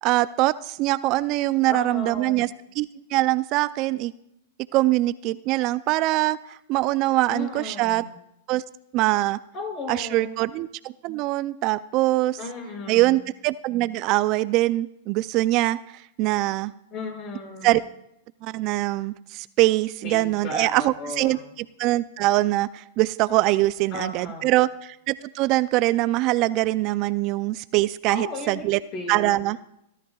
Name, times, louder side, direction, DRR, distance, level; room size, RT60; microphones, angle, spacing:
voice 1, 0.0-2.5 2.8-4.1 4.7-8.0 8.5-8.6 8.9-9.4 9.9-12.4 12.9-15.8 16.2-16.7 17.6-17.8 18.4-21.4 21.8-28.8 29.1-29.6, right 17 dB, 45° right, 16 dB, 0.4 m, -23 dB
voice 2, 1.7-2.5 7.3-8.0 9.5-10.4 12.4-13.1 16.9-17.7 20.0-21.4 23.9-24.5 28.1-29.3, left 3 dB, 40° left, 1 dB, 6.4 m, -35 dB
26.0 x 13.5 x 2.4 m, 0.79 s
hypercardioid pair, 115°, 0 cm